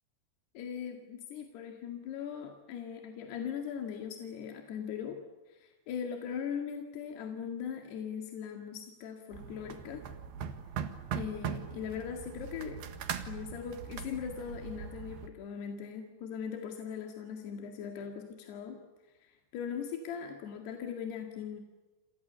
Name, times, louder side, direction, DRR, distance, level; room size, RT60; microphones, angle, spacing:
voice 1, 0.6-5.2 5.5-10.0 11.1-12.8 13.3-18.8 19.2-21.6, left 7 dB, 80° left, 3 dB, 4.2 m, -40 dB
sound 1, 9.3-15.3, right 7 dB, 70° right, 3.5 m, -40 dB
29.5 x 27.5 x 7.0 m, 1.2 s
omnidirectional pair, 4.7 m